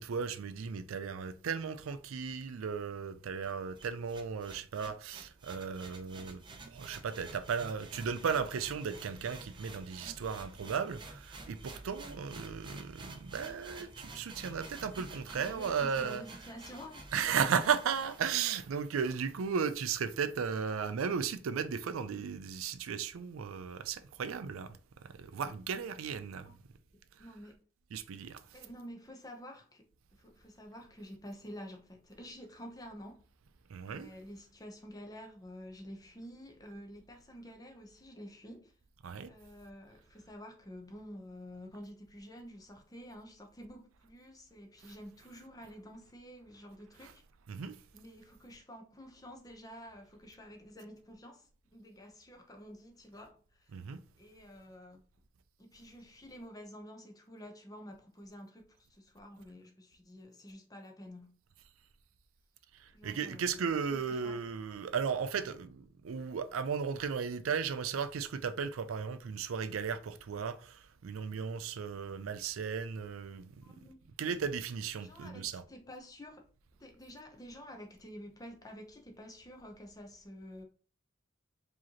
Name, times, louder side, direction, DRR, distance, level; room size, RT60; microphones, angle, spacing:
voice 1, 0.0-16.2 17.1-26.5 27.2-27.3 27.9-28.4 33.7-34.1 39.0-39.3 47.0-47.1 47.5-47.8 53.7-54.0 62.7-73.8 74.2-75.6, right 6 dB, 85° right, 0.4 m, -35 dB
sound 1, 3.4-18.4, right 2 dB, 25° right, 0.5 m, -50 dB
voice 2, 15.3-17.3 20.7-20.9 26.5-26.6 27.2-27.6 28.5-33.3 33.9-38.7 39.3-47.2 47.9-53.7 54.2-55.0 55.6-61.4 62.9-64.4 73.6-74.0 75.0-76.5 76.8-80.6, equal, 15° left, 0.7 m, -50 dB
4.8 x 2.9 x 2.9 m
head